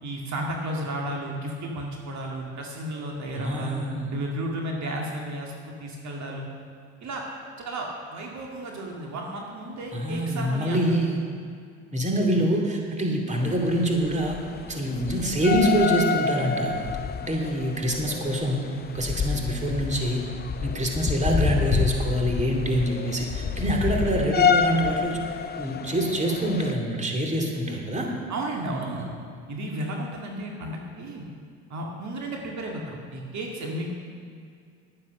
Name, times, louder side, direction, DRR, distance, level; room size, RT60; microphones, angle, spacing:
voice 1, 0.0-3.8 4.1-6.5 7.0-7.2 7.6-10.8 28.3-29.1 29.5-31.3 31.7-34.0, right 1 dB, 50° right, 0 dB, 2.2 m, -33 dB
voice 2, 3.4-4.1 9.9-11.2 11.9-14.4 14.7-16.8 17.2-20.2 20.6-25.2 25.6-28.1, right 1 dB, 20° right, 1 dB, 2.5 m, -25 dB
sound 1, 13.4-26.7, left 6 dB, 30° left, 0.6 m, -28 dB
11.0 x 9.8 x 6.6 m, 2.3 s
hypercardioid pair, 75°, 35 cm